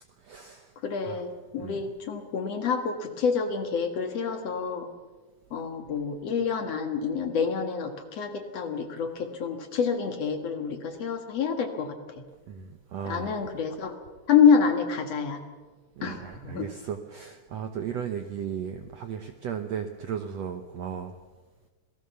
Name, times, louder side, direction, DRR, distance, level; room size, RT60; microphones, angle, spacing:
voice 1, 0.2-0.7 1.0-1.2 1.6-1.8 12.5-13.4 16.0-21.1, right 8 dB, 70° right, 7 dB, 1.6 m, -36 dB
voice 2, 0.8-4.9 5.5-12.0 13.0-14.0 14.3-15.4 16.0-16.7, left 6 dB, 55° left, 6 dB, 2.2 m, -27 dB
27.0 x 18.5 x 6.9 m, 1.3 s
omnidirectional pair, 4.3 m